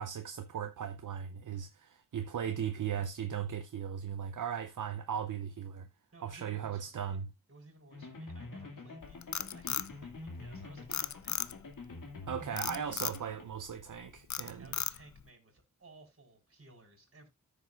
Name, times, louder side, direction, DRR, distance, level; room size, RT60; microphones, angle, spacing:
voice 1, 0.0-5.9 6.2-7.3 12.3-14.7, right 8 dB, 70° right, 0.7 m, -37 dB
voice 2, 6.1-7.2 7.5-11.5 14.6-17.3, right 2 dB, 45° right, 4.2 m, -58 dB
sound 1, 7.9-13.4, left 3 dB, 75° left, 2.3 m, -46 dB
Frog, 9.0-10.5 10.9-11.8 12.6-13.2 13.7-14.0 14.3-15.2, left 8 dB, 60° left, 0.6 m, -35 dB
14.0 x 6.7 x 2.4 m
wide cardioid pair, 80°, 32 cm